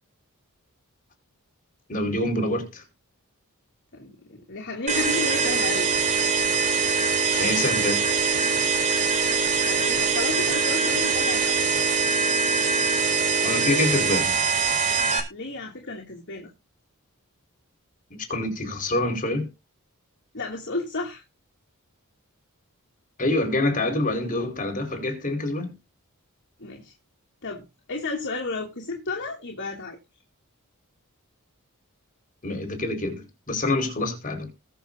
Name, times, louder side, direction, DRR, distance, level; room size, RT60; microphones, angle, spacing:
voice 1, 1.9-2.8 7.3-8.0 13.4-14.4 18.1-19.5 23.2-25.7 32.4-34.5, left 2 dB, 35° left, 5.0 m, -26 dB
voice 2, 3.9-5.9 9.6-11.9 15.3-16.5 20.3-21.2 26.6-26.9 27.4-30.0, left 3 dB, 55° left, 2.8 m, -32 dB
sound 1, 4.9-15.2, right 5 dB, 35° right, 3.7 m, -23 dB
21.0 x 7.3 x 2.7 m
head